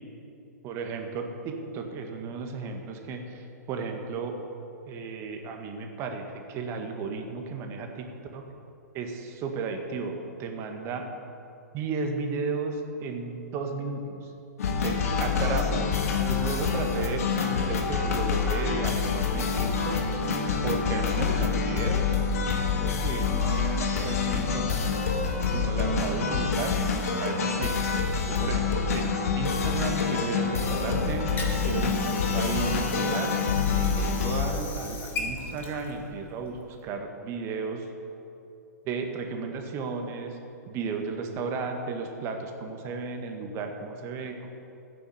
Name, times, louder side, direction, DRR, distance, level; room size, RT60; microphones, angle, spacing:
voice 1, 0.6-4.4 4.9-8.1 8.3-8.4 8.9-11.1 11.7-14.3 14.8-15.9 16.3-20.0 20.6-22.2 22.8-25.2 25.4-26.8 27.2-27.9 28.3-33.4 33.7-37.9 38.8-40.4 40.7-44.5, right 4 dB, 30° right, 4 dB, 1.7 m, -34 dB
sound 1, 14.6-34.5, left 5 dB, 55° left, 1.9 m, -27 dB
Water / Sink (filling or washing), 31.2-36.9, left 3 dB, 20° left, 2.1 m, -39 dB
14.5 x 9.4 x 7.0 m, 2.7 s
figure-of-eight pair, 115°, 9 cm